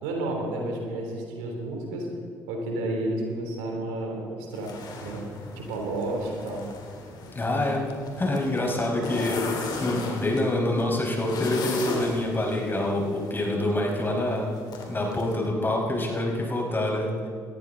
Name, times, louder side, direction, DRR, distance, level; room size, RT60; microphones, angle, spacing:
voice 1, 0.0-2.1 2.5-4.7 5.0-5.3 5.5-6.6, right 2 dB, 80° right, 1 dB, 3.2 m, -31 dB
sound 1, 4.5-15.4, left 3 dB, 60° left, 3.3 m, -37 dB
voice 2, 7.4-7.9 8.2-14.6 14.9-17.3, left 1 dB, 25° left, 0 dB, 5.1 m, -26 dB
20.0 x 14.5 x 3.9 m, 2.1 s
hypercardioid pair, 55°, 8 cm